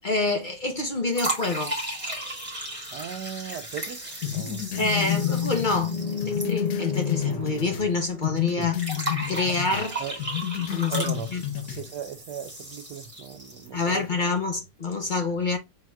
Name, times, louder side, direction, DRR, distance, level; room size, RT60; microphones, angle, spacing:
voice 1, 0.0-1.8 4.8-8.8 9.3-10.0 10.7-11.0 11.3-11.4 13.7-15.6, left 3 dB, 45° left, 0.6 m, -27 dB
sound 1, 1.1-7.3 7.6-7.7 8.8-13.8, right 1 dB, 20° right, 1.9 m, -35 dB
voice 2, 2.9-4.9 8.6-8.7 9.5-9.6 10.0-10.2 10.6-11.3 11.5-14.1, right 8 dB, 70° right, 1.2 m, -37 dB
sound 2, 4.2-7.9 8.2-9.9 10.2-11.8, left 12 dB, 65° left, 1.2 m, -30 dB
sound 3, 4.8-8.9, left 5 dB, 20° left, 1.4 m, -31 dB
5.3 x 4.4 x 2.3 m
omnidirectional pair, 2.0 m